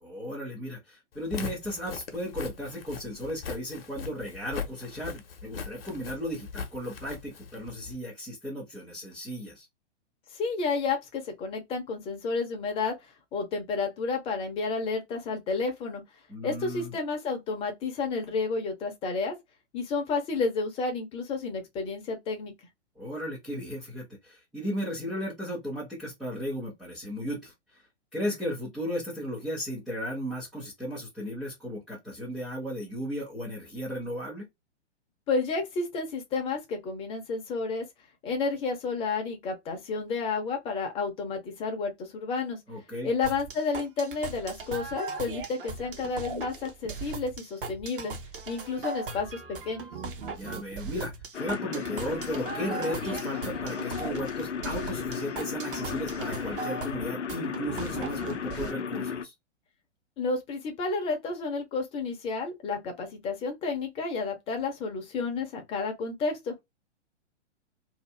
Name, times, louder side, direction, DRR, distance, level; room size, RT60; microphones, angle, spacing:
voice 1, 0.0-9.7 16.3-16.9 23.0-27.8 28.1-34.5 42.7-43.1 50.3-59.3, equal, ahead, 0.4 m, -35 dB
Walk footsteps, 1.2-8.0, left 6 dB, 55° left, 0.9 m, -40 dB
voice 2, 10.3-13.0 13.3-16.0 16.4-19.3 19.7-22.5 35.3-37.8 38.2-42.6 43.0-48.1 48.5-49.9 60.2-66.5, left 4 dB, 15° left, 0.7 m, -31 dB
sound 1, 43.2-58.7, right 4 dB, 50° right, 0.9 m, -38 dB
sound 2, 51.3-59.3, left 7 dB, 75° left, 0.5 m, -35 dB
2.8 x 2.4 x 3.2 m
figure-of-eight pair, 110°, 35 cm